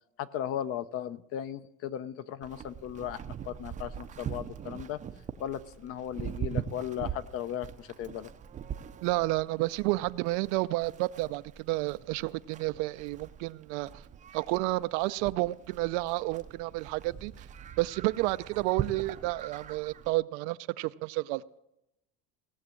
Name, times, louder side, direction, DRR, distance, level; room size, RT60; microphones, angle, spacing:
voice 1, 0.2-5.0 5.4-8.3, left 10 dB, 45° left, 14 dB, 0.5 m, -36 dB
Livestock farm animals working animals, 2.4-20.1, right 9 dB, 25° right, 0.5 m, -42 dB
voice 2, 9.0-14.0 14.3-17.5 17.8-21.6, right 20 dB, 85° right, 16 dB, 0.5 m, -31 dB
17.5 x 7.1 x 7.6 m, 0.89 s
cardioid pair, 150°, 33 cm